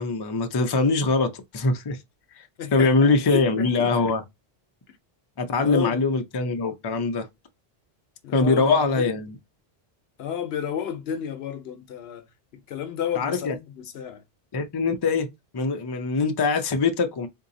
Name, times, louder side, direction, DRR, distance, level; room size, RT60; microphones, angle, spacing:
voice 1, 0.0-2.0 2.3-2.5 2.7-4.2 5.4-7.3 8.3-9.3 13.1-13.5 14.5-17.3, left 3 dB, 35° left, 0.4 m, -23 dB
voice 2, 2.6-4.1 5.6-6.0 8.2-9.1 10.2-12.3 12.7-14.2, left 8 dB, 80° left, 0.9 m, -32 dB
3.9 x 2.7 x 2.6 m
omnidirectional pair, 1.0 m